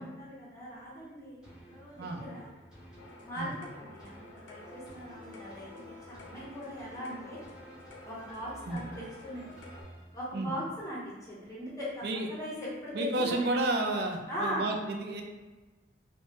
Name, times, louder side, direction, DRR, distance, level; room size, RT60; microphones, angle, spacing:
voice 1, 0.0-1.4 1.7-2.5 3.2-5.7 6.1-7.4 8.0-9.5 10.1-13.5 14.3-14.7, equal, 20° left, -7 dB, 0.6 m, -40 dB
sound 1, 1.4-10.8 11.3-11.4, equal, 5° right, 1.0 m, -52 dB
sound 2, 3.0-9.8, left 2 dB, 80° left, 0.5 m, -52 dB
voice 2, 12.9-15.2, right 2 dB, 60° right, 3 dB, 0.4 m, -31 dB
2.9 x 2.1 x 2.7 m, 1.2 s
head